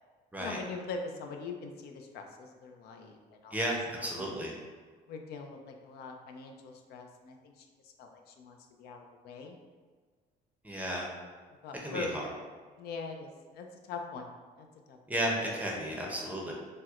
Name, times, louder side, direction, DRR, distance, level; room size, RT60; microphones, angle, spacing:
voice 1, 0.4-4.4 5.1-9.6 11.6-12.1 12.8-15.0, left 4 dB, 70° left, 3 dB, 0.4 m, -43 dB
voice 2, 3.5-4.5 10.6-11.1 11.8-12.3 15.1-16.5, right 1 dB, 10° right, -2 dB, 0.6 m, -33 dB
4.3 x 2.1 x 2.4 m, 1.5 s
cardioid pair, 110°, 17 cm